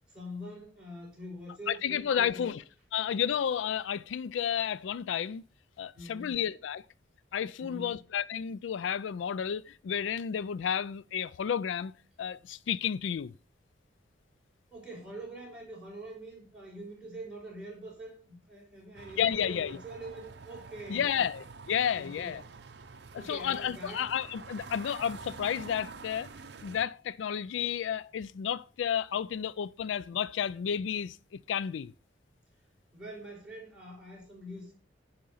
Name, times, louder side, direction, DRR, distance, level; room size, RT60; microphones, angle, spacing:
voice 1, 0.1-2.6 5.9-6.4 7.6-8.0 14.7-21.3 22.0-22.5 23.1-24.0 32.9-34.7, right 1 dB, 5° right, 4.5 m, -44 dB
voice 2, 1.7-2.6 2.9-5.4 5.8-6.8 7.3-11.9 12.2-13.3 19.2-19.8 20.9-22.4 23.1-26.3 26.6-31.9, left 8 dB, 80° left, 0.3 m, -31 dB
sound 1, 18.9-26.8, right 4 dB, 60° right, 0.7 m, -47 dB
10.0 x 5.2 x 5.4 m
head